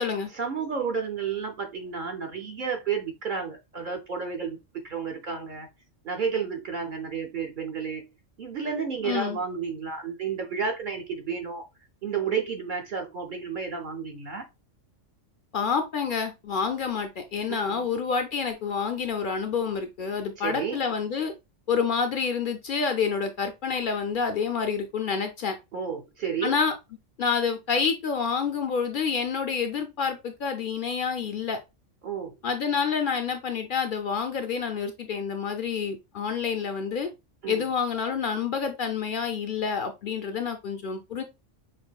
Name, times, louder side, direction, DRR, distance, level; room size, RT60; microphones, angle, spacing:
voice 1, 0.3-4.6 4.8-5.7 6.0-8.1 8.4-11.6 12.0-14.5 17.5-17.9 20.4-20.8 25.7-26.5 32.0-32.4 37.4-37.7, right 6 dB, 50° right, 0.7 m, -31 dB
voice 2, 9.0-9.4 15.5-21.3 21.7-25.6 26.4-26.7 27.2-31.6 32.4-37.1 37.5-41.2, left 6 dB, 60° left, 0.5 m, -28 dB
6.0 x 2.6 x 2.3 m
omnidirectional pair, 1.3 m